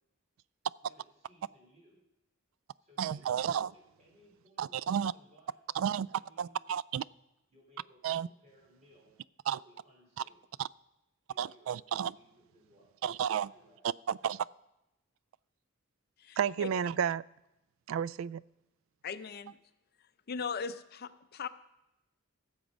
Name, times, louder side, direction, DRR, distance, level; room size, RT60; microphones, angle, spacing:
voice 1, 0.8-2.0 2.8-6.6 7.5-9.2 9.5-10.4 11.3-11.8 12.1-12.9 13.5-14.0, equal, 35° right, -2 dB, 3.8 m, -63 dB
voice 2, 3.0-3.7 4.6-5.1 5.8-6.1 6.4-7.0 8.0-8.3 9.5-9.6 10.6-10.7 11.4-12.1 13.0-13.5 14.1-14.5 16.4-17.2 17.9-18.4, right 8 dB, 70° right, 22 dB, 0.3 m, -32 dB
voice 3, 16.2-16.7 19.0-19.6 20.3-21.5, left 5 dB, 50° left, 12 dB, 0.5 m, -39 dB
16.0 x 7.1 x 5.1 m, 0.91 s
head